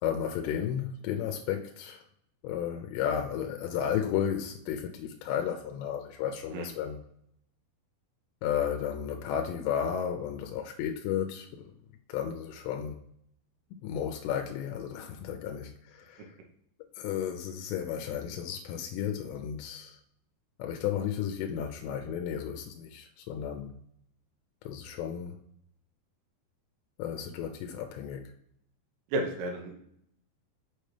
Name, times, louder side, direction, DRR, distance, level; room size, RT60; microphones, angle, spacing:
voice 1, 0.0-2.0 2.4-7.0 8.4-11.7 12.1-13.0 13.7-16.3 17.0-20.0 20.6-23.7 24.7-25.4 27.0-28.3, left 9 dB, 80° left, 5 dB, 2.6 m, -33 dB
voice 2, 29.1-29.8, right 1 dB, 75° right, 2 dB, 2.9 m, -32 dB
6.5 x 6.3 x 3.3 m, 0.71 s
omnidirectional pair, 5.2 m